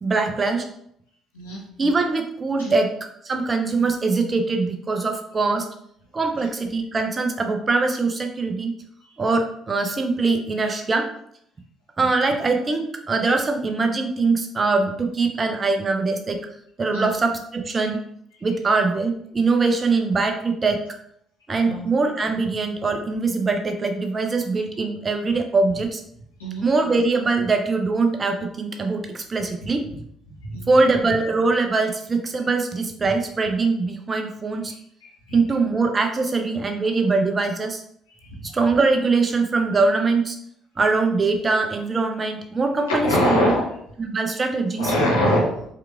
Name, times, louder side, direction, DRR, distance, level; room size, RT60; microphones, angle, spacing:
voice 1, 0.0-0.7 1.8-2.9 3.2-5.7 6.1-8.7 9.2-11.1 12.0-16.4 16.8-18.0 18.4-20.8 21.5-26.0 26.6-29.8 30.7-34.7 35.3-37.8 38.4-40.4 40.8-43.5 44.0-44.9, right 3 dB, 30° right, 5 dB, 0.6 m, -22 dB
voice 2, 30.4-30.7 35.0-35.3 38.2-38.5 43.0-43.6 44.8-45.7, equal, 80° left, -6 dB, 1.4 m, -23 dB
4.6 x 3.5 x 2.4 m, 0.71 s
figure-of-eight pair, 50°, 0 cm